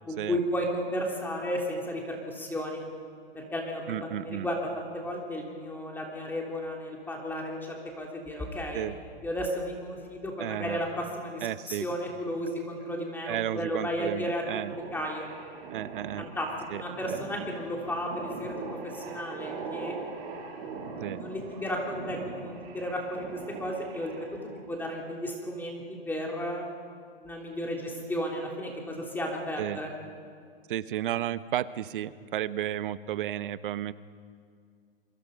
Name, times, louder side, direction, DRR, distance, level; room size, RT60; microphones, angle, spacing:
voice 1, 0.1-2.8 3.3-8.8 9.2-14.4 14.9-15.3 16.2-16.5 16.7-24.3 24.7-26.6 27.2-29.9, equal, 5° left, 0 dB, 3.1 m, -34 dB
voice 2, 3.9-4.5 8.7-9.0 10.4-10.8 11.4-11.9 13.3-14.8 15.7-16.3 16.7-16.8 17.1-17.2 21.0-21.2 29.6-29.8 30.7-33.9, right 12 dB, 55° right, 15 dB, 1.0 m, -33 dB
sound 1, 14.7-24.6, right 4 dB, 40° right, 6.9 m, -41 dB
27.0 x 23.5 x 5.3 m, 2.1 s
hypercardioid pair, 135°, 30 cm